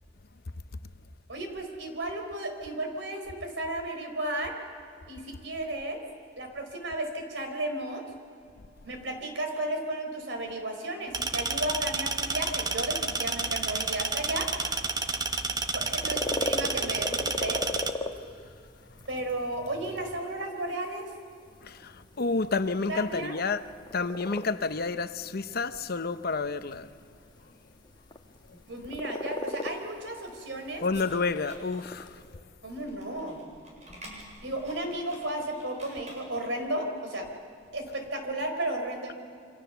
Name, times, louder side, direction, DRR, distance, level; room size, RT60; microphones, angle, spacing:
voice 1, 1.3-4.5 5.1-6.0 6.4-8.0 8.8-14.5 15.7-17.6 19.1-21.1 22.9-23.4 28.5-30.8 32.6-33.4 34.4-37.3 37.7-39.2, right 1 dB, 70° right, 4.4 m, -34 dB
sound 1, 11.1-17.9, right 4 dB, 20° right, 1.1 m, -30 dB
sound 2, 15.7-32.4, left 2 dB, 25° left, 1.3 m, -38 dB
voice 2, 21.6-23.6 23.9-26.9 27.4-27.5 30.8-32.3, left 4 dB, 55° left, 0.8 m, -30 dB
sound 3, 29.4-36.6, equal, 40° right, 7.2 m, -51 dB
28.5 x 25.0 x 7.0 m
head